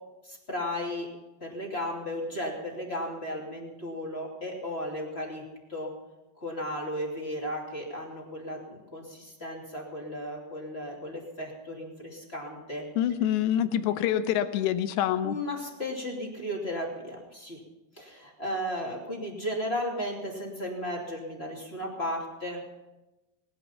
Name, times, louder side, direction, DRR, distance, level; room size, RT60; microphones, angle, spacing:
voice 1, 0.2-1.1 1.4-5.4 5.7-5.9 6.4-12.8 15.2-17.6 18.0-22.6, equal, 20° left, -1 dB, 2.3 m, -35 dB
voice 2, 13.0-15.4, left 11 dB, 85° left, 11 dB, 3.0 m, -26 dB
20.0 x 11.0 x 5.7 m, 1.0 s
omnidirectional pair, 5.0 m